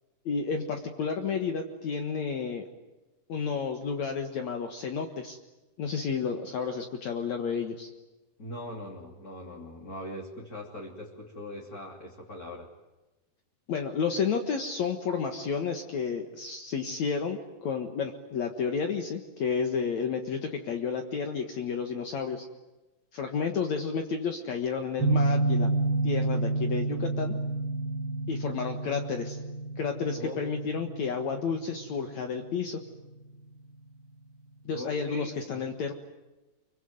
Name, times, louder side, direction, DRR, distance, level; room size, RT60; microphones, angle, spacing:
voice 1, 0.3-2.7 3.3-5.4 5.8-7.9 13.7-22.5 23.1-25.7 26.0-27.4 28.3-29.4 29.8-32.8 34.7-35.9, left 6 dB, 60° left, 4 dB, 2.6 m, -31 dB
voice 2, 8.4-12.7 30.2-30.4 34.7-35.7, left 1 dB, 25° left, -1 dB, 3.0 m, -41 dB
sound 1, 25.0-33.7, right 2 dB, 90° right, 4.6 m, -30 dB
25.5 x 24.0 x 9.4 m, 1.1 s
omnidirectional pair, 4.1 m